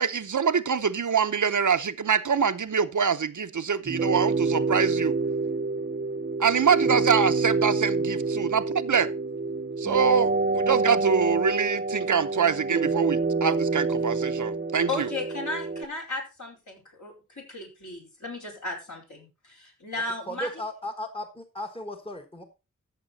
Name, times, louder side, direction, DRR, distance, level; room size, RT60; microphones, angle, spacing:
voice 1, 0.0-5.1 6.4-9.1 9.8-15.1, right 6 dB, 65° right, 0.7 m, -25 dB
sound 1, 3.9-15.9, right 3 dB, 30° right, 0.8 m, -27 dB
voice 2, 14.9-16.7 17.0-20.5, left 2 dB, 60° left, 4.8 m, -35 dB
voice 3, 20.3-22.4, left 1 dB, 15° left, 1.3 m, -36 dB
14.0 x 6.8 x 4.0 m
wide cardioid pair, 80°, 32 cm